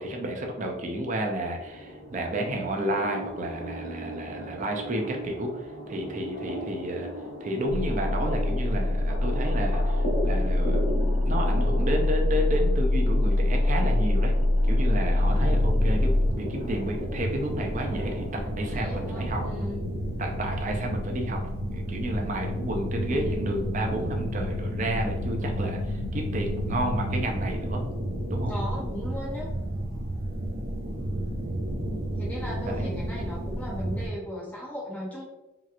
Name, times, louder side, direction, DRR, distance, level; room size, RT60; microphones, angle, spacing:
voice 1, 0.0-7.1 7.4-14.3 14.6-19.4 20.2-21.4 21.7-27.8 28.3-28.5 32.7-32.9, right 1 dB, 35° right, 2 dB, 0.4 m, -31 dB
sound 1, 1.6-19.6, equal, 60° left, 1.1 m, -38 dB
sound 2, 7.7-27.2, left 1 dB, 80° left, 0.4 m, -27 dB
sound 3, 15.2-34.1, right 1 dB, 65° right, 0.8 m, -32 dB
voice 2, 18.6-19.9 28.4-29.5 32.2-35.3, equal, 5° left, -4 dB, 0.7 m, -37 dB
3.1 x 2.9 x 2.4 m, 1.0 s
head